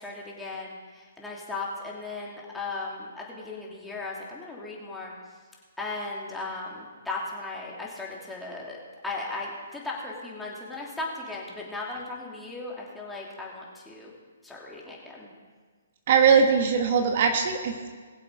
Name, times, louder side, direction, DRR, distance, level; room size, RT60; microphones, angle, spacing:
voice 1, 0.0-5.1 5.8-8.8 9.0-14.1 14.4-15.3, left 3 dB, 5° left, -4 dB, 2.7 m, -36 dB
voice 2, 16.1-17.9, right 6 dB, 50° right, 5 dB, 1.4 m, -21 dB
21.0 x 7.6 x 5.0 m, 1.5 s
hypercardioid pair, 145°, 0 cm